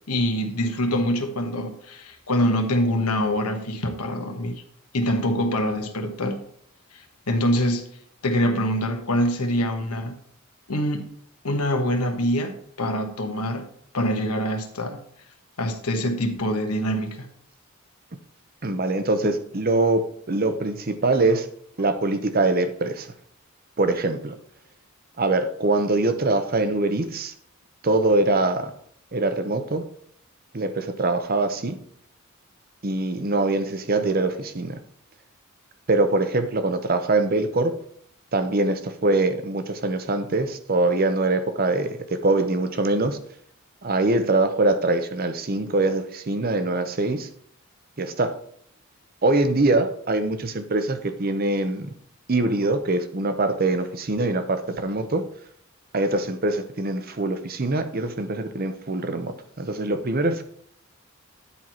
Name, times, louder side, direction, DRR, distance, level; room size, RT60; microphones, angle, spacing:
voice 1, 0.1-4.6 4.9-6.4 6.9-7.9 8.2-10.2 10.7-11.0 11.4-13.7 13.9-15.0 15.6-17.3, equal, 90° left, 5 dB, 1.3 m, -25 dB
voice 2, 18.6-20.0 20.3-21.5 21.8-23.1 23.8-24.3 25.2-27.3 27.8-28.7 29.1-29.8 30.5-31.8 32.8-34.8 35.9-37.7 38.3-43.2 43.8-47.3 48.0-48.3 49.2-51.9 52.3-55.2 55.9-60.4, right 2 dB, 40° right, 9 dB, 0.7 m, -23 dB
9.8 x 4.6 x 4.3 m, 0.66 s
head